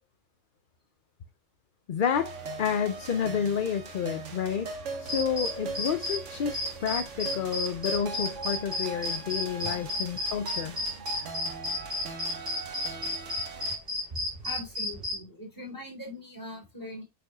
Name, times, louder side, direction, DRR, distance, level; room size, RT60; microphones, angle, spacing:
voice 1, 1.9-2.3 2.6-4.7 5.0-10.8, left 7 dB, 55° left, 0.7 m, -30 dB
sound 1, 2.1-13.8, right 4 dB, 80° right, 1.5 m, -40 dB
sound 2, 5.1-6.2 6.5-15.2, left 2 dB, 40° right, 4.2 m, -32 dB
voice 2, 14.4-17.0, left 1 dB, 15° left, 3.6 m, -41 dB
8.6 x 5.4 x 2.3 m
omnidirectional pair, 1.3 m